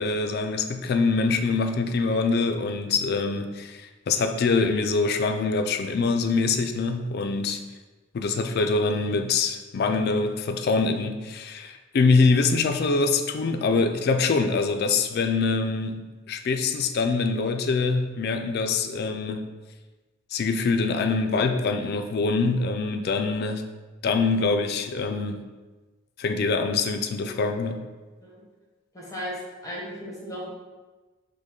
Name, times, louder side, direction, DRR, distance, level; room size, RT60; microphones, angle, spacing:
voice 1, 0.0-7.6 8.1-19.5 20.3-23.7 24.0-25.5 26.2-27.8, left 4 dB, 55° left, 6 dB, 0.3 m, -24 dB
voice 2, 28.9-29.4 29.6-30.5, equal, 20° left, -4 dB, 0.9 m, -35 dB
5.1 x 2.1 x 3.7 m, 1.2 s
head